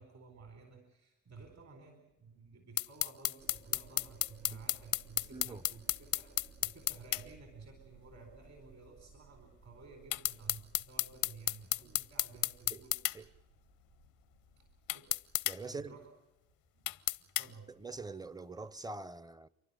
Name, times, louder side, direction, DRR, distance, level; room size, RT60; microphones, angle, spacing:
voice 1, 0.0-13.3 14.6-14.7 14.9-15.1 15.6-16.1 16.7-17.7, right 4 dB, 55° right, 4.4 m, -54 dB
sound 1, 2.8-7.2 10.1-13.2 14.9-15.6 16.9-17.5, left 15 dB, 85° left, 0.7 m, -33 dB
sound 2, 3.4-15.7, right 4 dB, 85° right, 3.9 m, -60 dB
voice 2, 5.3-5.6 11.8-11.9 12.7-12.8 13.1-13.3 15.5-16.0 17.7-19.5, right 3 dB, 10° right, 0.7 m, -44 dB
30.0 x 12.0 x 9.8 m
cardioid pair, 80°, 33 cm